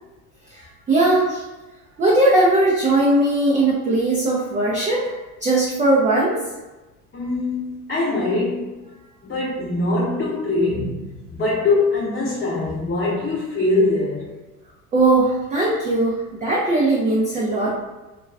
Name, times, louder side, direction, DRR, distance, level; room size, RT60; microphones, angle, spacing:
voice 1, 0.9-1.4 2.0-6.4 14.9-17.8, right 2 dB, 15° right, -5 dB, 0.5 m, -19 dB
voice 2, 7.1-8.8 9.2-14.3, left 2 dB, 20° left, -9 dB, 0.8 m, -22 dB
2.3 x 2.2 x 3.3 m, 1.1 s
hypercardioid pair, 80°, 45 cm